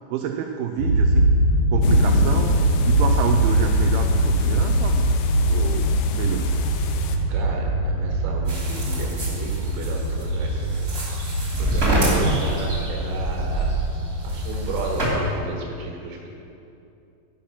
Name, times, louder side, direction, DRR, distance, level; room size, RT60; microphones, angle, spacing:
voice 1, 0.1-1.3 1.7-2.6 2.9-5.1 5.5-5.9 6.1-6.5 11.9-12.3, right 9 dB, 85° right, 3 dB, 2.8 m, -28 dB
sound 1, 0.8-15.3, right 1 dB, 55° left, 3.1 m, -22 dB
sound 2, 1.8-7.2, left 5 dB, 85° left, 2.4 m, -33 dB
voice 2, 7.3-10.9 11.6-13.7 14.2-16.4, right 3 dB, 65° right, -1 dB, 2.8 m, -34 dB
sound 3, 8.5-15.1, right 1 dB, 20° right, 1.6 m, -27 dB
12.0 x 5.9 x 5.8 m, 2.7 s
omnidirectional pair, 5.7 m